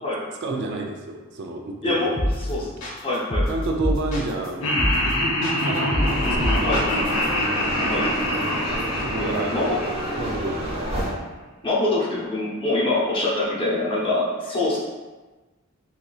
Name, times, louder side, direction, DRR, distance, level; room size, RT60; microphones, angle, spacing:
voice 1, 0.4-2.2 2.6-2.8 3.5-4.7 5.6-5.9 6.4-6.9 9.0-9.6 10.2-10.9, right 3 dB, 55° right, 2 dB, 0.4 m, -30 dB
sound 1, 2.2-2.5 2.8-4.5 4.8-5.1 5.4-7.3, equal, 70° left, 1.3 m, -25 dB
voice 2, 3.0-3.5 6.6-6.8 7.8-8.1 9.2-9.8 11.6-14.8, left 2 dB, 25° left, -6 dB, 0.7 m, -24 dB
Laughter, 4.6-10.8, left 1 dB, 90° left, 0.6 m, -25 dB
sound 2, 6.0-11.1, equal, 25° right, 1.1 m, -29 dB
3.9 x 2.8 x 2.3 m, 1.2 s
head